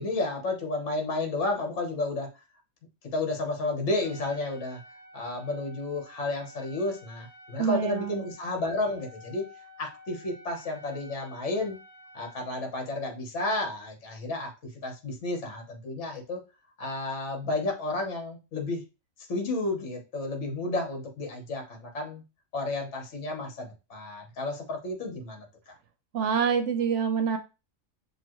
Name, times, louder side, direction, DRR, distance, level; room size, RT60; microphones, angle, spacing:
voice 1, 0.0-2.3 3.1-4.8 5.1-9.4 9.8-11.8 12.1-16.4 16.8-18.8 19.3-22.2 22.5-25.7, left 2 dB, 55° left, 3 dB, 1.4 m, -32 dB
Trumpet, 4.0-12.4, left 1 dB, 40° left, 2.7 m, -51 dB
voice 2, 7.6-8.2 26.1-27.4, right 6 dB, 65° right, 8 dB, 0.8 m, -26 dB
7.0 x 2.5 x 3.0 m, 0.29 s
omnidirectional pair, 1.5 m